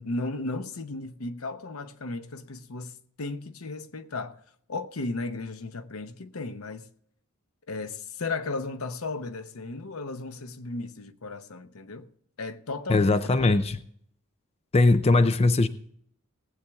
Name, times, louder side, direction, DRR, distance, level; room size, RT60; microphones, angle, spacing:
voice 1, 0.0-4.4 4.7-6.9 7.7-12.1 12.4-13.5, left 3 dB, 85° left, 0.8 m, -35 dB
voice 2, 12.9-13.8 14.7-15.7, left 2 dB, 30° left, 0.5 m, -20 dB
18.5 x 8.3 x 3.5 m
head